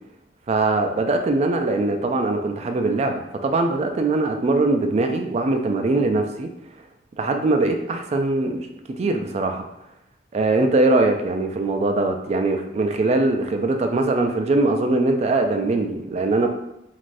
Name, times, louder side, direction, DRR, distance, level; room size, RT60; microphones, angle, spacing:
voice 1, 0.5-6.5 7.2-8.7 9.0-9.7 10.3-16.5, right 2 dB, 35° right, 5 dB, 0.3 m, -21 dB
3.2 x 2.5 x 2.5 m, 0.84 s
head